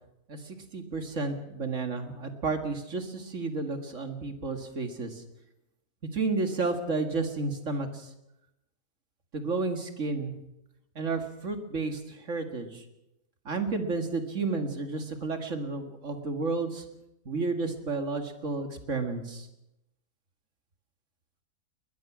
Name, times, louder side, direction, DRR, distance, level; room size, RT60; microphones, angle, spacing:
voice 1, 0.3-5.2 6.1-8.1 9.3-10.3 11.0-12.8 13.5-16.9 17.3-19.5, right 3 dB, 60° right, 6 dB, 2.4 m, -32 dB
21.0 x 20.5 x 6.2 m, 0.89 s
omnidirectional pair, 1.5 m